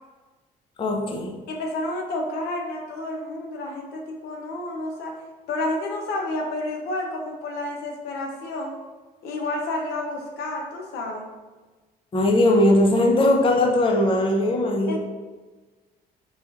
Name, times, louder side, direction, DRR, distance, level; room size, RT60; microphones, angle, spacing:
voice 1, 0.8-1.4 12.1-15.0, left 1 dB, 30° left, 1 dB, 0.6 m, -19 dB
voice 2, 1.5-5.2 5.5-8.7 9.2-11.3 14.9-15.0, left 2 dB, 75° left, 1 dB, 0.8 m, -30 dB
4.6 x 4.0 x 2.5 m, 1.3 s
cardioid pair, 110°, 17 cm